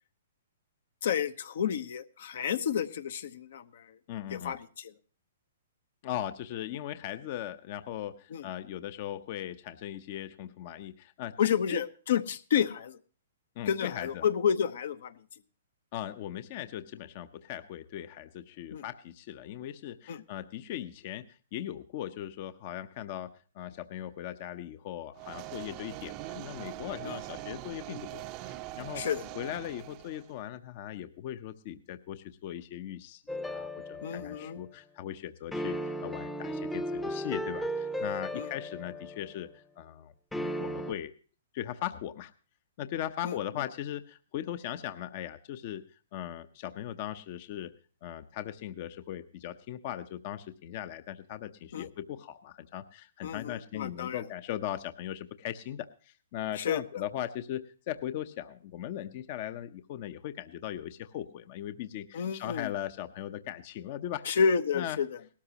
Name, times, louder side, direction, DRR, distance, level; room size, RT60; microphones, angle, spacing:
voice 1, 1.0-4.0 4.3-4.9 8.3-8.4 11.4-13.0 13.7-15.1 18.7-18.8 20.1-20.2 27.0-27.2 29.0-29.3 34.0-34.6 38.3-38.5 43.2-43.4 51.7-51.9 53.2-54.2 56.5-57.0 62.1-62.7 64.2-65.1, left 7 dB, 65° left, 11 dB, 0.9 m, -30 dB
voice 2, 4.1-4.6 6.0-11.3 11.7-11.8 13.6-14.3 15.9-29.0 29.3-41.1 41.5-42.3 42.8-45.8 46.1-47.7 48.0-64.2 64.7-65.0, left 11 dB, 45° left, 11 dB, 0.7 m, -39 dB
sound 1, 25.1-30.3, right 16 dB, 35° right, 0.6 m, -42 dB
sound 2, 33.3-34.7 35.5-39.5 40.3-40.9, equal, 5° left, 0.7 m, -36 dB
18.0 x 13.0 x 2.9 m, 0.40 s
hypercardioid pair, 145°, 0 cm